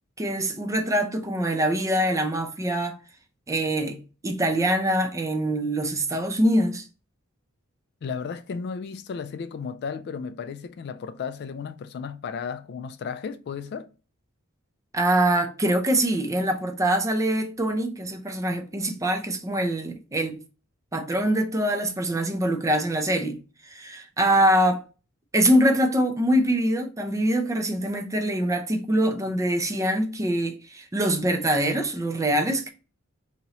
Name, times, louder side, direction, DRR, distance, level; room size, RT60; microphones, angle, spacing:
voice 1, 0.2-3.0 3.5-6.9 14.9-20.4 20.9-23.4 23.7-24.8 25.3-32.7, right 1 dB, 15° right, 0.4 m, -24 dB
voice 2, 8.0-13.9, left 6 dB, 50° left, 0.3 m, -34 dB
2.9 x 2.8 x 3.9 m
head